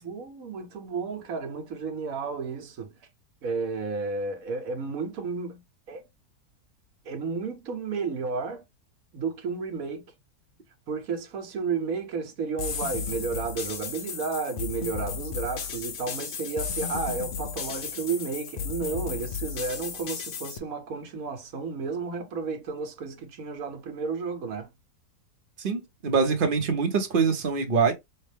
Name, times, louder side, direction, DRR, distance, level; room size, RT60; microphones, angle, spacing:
voice 1, 0.0-2.9 3.4-5.6 5.9-6.1 7.0-8.6 9.1-10.0 10.9-24.7, right 5 dB, 65° right, 1.4 m, -32 dB
sound 1, 12.6-20.6, left 6 dB, 80° left, 0.4 m, -34 dB
voice 2, 25.6-27.9, right 5 dB, 45° right, 0.8 m, -24 dB
5.5 x 2.1 x 3.3 m
omnidirectional pair, 1.7 m